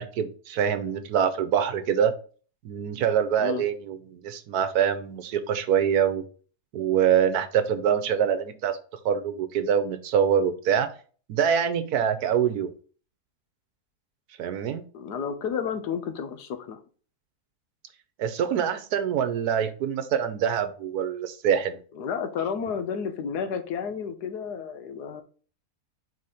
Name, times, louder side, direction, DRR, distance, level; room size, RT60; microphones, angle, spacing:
voice 1, 0.0-2.1 2.6-6.2 6.7-8.8 9.0-10.9 11.3-12.7 14.4-14.8 18.2-21.8, right 8 dB, 75° right, 10 dB, 1.3 m, -25 dB
voice 2, 14.9-16.8 21.9-25.2, left 7 dB, 85° left, 8 dB, 1.5 m, -31 dB
4.5 x 4.2 x 4.9 m, 0.40 s
omnidirectional pair, 1.7 m